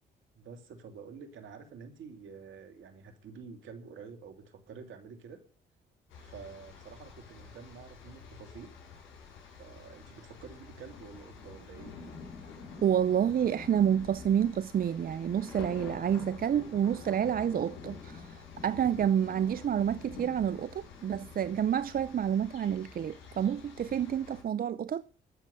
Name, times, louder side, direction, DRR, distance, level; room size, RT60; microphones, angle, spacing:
voice 1, 0.4-5.4 6.2-8.7 9.6-12.0, right 5 dB, 70° right, 2.7 m, -48 dB
sound 1, 6.1-24.4, left 5 dB, 75° left, 5.6 m, -48 dB
voice 2, 12.8-25.0, right 9 dB, 45° right, 0.6 m, -29 dB
12.5 x 7.6 x 7.9 m
hypercardioid pair, 50°, 21 cm